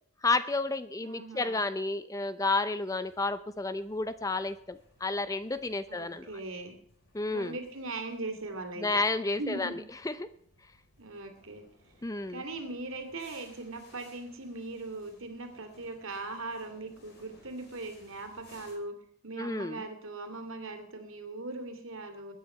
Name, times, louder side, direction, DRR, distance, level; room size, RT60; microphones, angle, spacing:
voice 1, 0.2-6.3 7.1-7.6 8.8-9.8 10.0-10.3 12.0-12.4 19.4-19.8, left 3 dB, 15° left, 13 dB, 0.5 m, -31 dB
voice 2, 1.0-1.6 5.9-6.8 7.3-9.0 9.4-9.8 11.0-11.6 12.3-18.9 19.2-22.3, right 2 dB, 70° right, 6 dB, 2.7 m, -40 dB
sound 1, 3.0-18.7, left 1 dB, 50° left, 5.4 m, -62 dB
20.5 x 9.6 x 5.7 m, 0.66 s
head